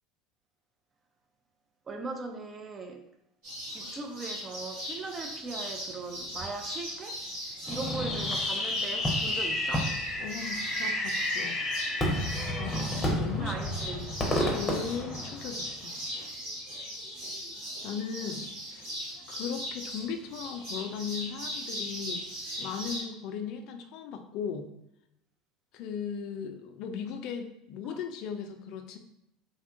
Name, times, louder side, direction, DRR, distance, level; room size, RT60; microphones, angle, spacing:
voice 1, 1.9-3.0 3.7-7.2 7.7-9.9 13.3-14.1 27.9-28.0, right 3 dB, 30° right, 4 dB, 0.5 m, -39 dB
sound 1, 3.4-23.0, equal, 70° right, 1.3 m, -39 dB
Fireworks, 7.7-15.8, left 1 dB, 25° left, 0.7 m, -30 dB
voice 2, 10.2-11.6 12.6-13.5 13.9-14.1 14.5-15.9 17.8-18.9 19.3-22.2 22.6-24.7 25.7-29.0, left 7 dB, 60° left, 6 dB, 0.3 m, -37 dB
2.6 x 2.2 x 2.5 m, 0.81 s
hypercardioid pair, 80°, 0 cm